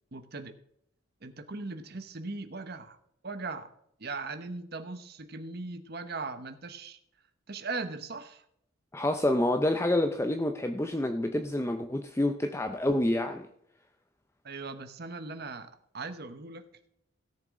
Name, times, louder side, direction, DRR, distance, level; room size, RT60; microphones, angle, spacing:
voice 1, 0.1-0.5 1.2-3.0 3.2-3.7 4.0-7.0 7.5-8.4 14.4-16.6, right 3 dB, 50° right, 8 dB, 1.0 m, -39 dB
voice 2, 8.9-13.5, left 1 dB, 10° left, 6 dB, 0.5 m, -28 dB
17.0 x 7.1 x 3.7 m, 0.75 s
head